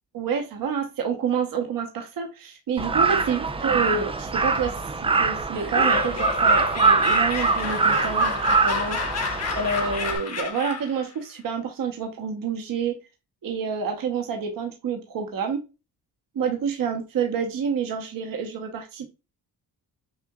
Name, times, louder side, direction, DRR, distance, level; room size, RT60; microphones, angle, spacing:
voice 1, 0.1-4.7 5.0-9.1 9.6-13.0 13.4-15.6 16.3-19.1, right 6 dB, 50° right, 3 dB, 1.1 m, -28 dB
Crow, 2.8-10.2, right 4 dB, 15° right, 0.4 m, -23 dB
Laughter, 5.5-11.0, left 5 dB, 35° left, 1.2 m, -31 dB
6.1 x 2.5 x 2.3 m, 0.27 s
cardioid pair, 100°, 42 cm